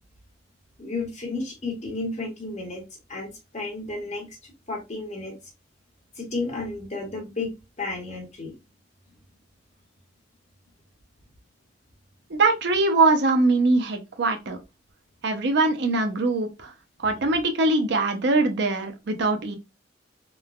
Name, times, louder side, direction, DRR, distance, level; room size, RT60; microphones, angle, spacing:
voice 1, 0.8-2.8 3.1-5.4 6.2-8.5 17.0-17.4, left 3 dB, 40° left, 0.9 m, -33 dB
voice 2, 12.3-14.6 15.2-16.7 17.0-19.6, right 3 dB, 65° right, 0.5 m, -22 dB
3.1 x 2.1 x 2.3 m
head